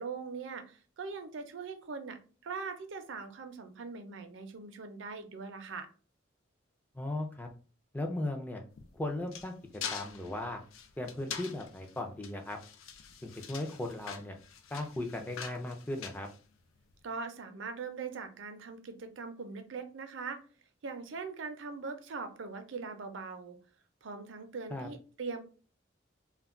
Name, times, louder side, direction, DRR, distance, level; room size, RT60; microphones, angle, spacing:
voice 1, 0.0-5.9 17.0-20.4 20.8-23.6 24.0-25.4, right 4 dB, 65° right, 8 dB, 0.5 m, -41 dB
voice 2, 6.9-7.5 7.9-8.6 8.9-9.6 9.9-10.6 11.0-12.6 13.2-14.4 14.7-16.3 24.7-24.9, left 1 dB, 10° left, 3 dB, 0.4 m, -37 dB
sound 1, 8.7-17.0, left 7 dB, 80° left, 0.4 m, -45 dB
2.2 x 2.2 x 3.6 m, 0.37 s
head